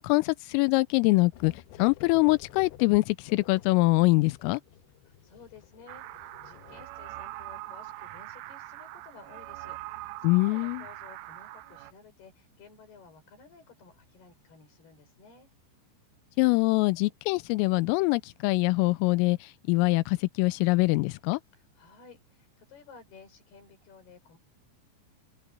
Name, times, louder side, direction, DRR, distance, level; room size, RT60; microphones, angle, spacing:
voice 1, 0.0-1.5 1.8-4.6 10.2-10.8 16.4-21.4, left 23 dB, 90° left, 3.3 m, -24 dB
sound 1, 1.3-6.9, left 12 dB, 75° left, 2.9 m, -51 dB
voice 2, 5.1-15.5 21.5-24.4, left 5 dB, 50° left, 7.8 m, -54 dB
sound 2, 5.9-11.9, right 17 dB, 85° right, 3.4 m, -42 dB
open air
omnidirectional pair, 5.8 m